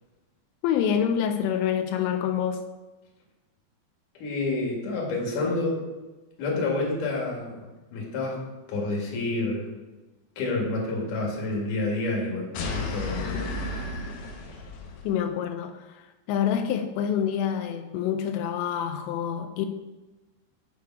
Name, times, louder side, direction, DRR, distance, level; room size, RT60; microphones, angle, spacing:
voice 1, 0.6-2.6 15.0-19.7, left 8 dB, 90° left, 6 dB, 2.8 m, -27 dB
voice 2, 4.2-5.8 6.4-8.4 8.7-9.7 10.4-13.7, left 2 dB, 55° left, -2 dB, 3.0 m, -29 dB
sound 1, 12.5-15.1, left 2 dB, 70° left, 2.7 m, -33 dB
7.1 x 6.6 x 4.6 m, 1.1 s
omnidirectional pair, 5.0 m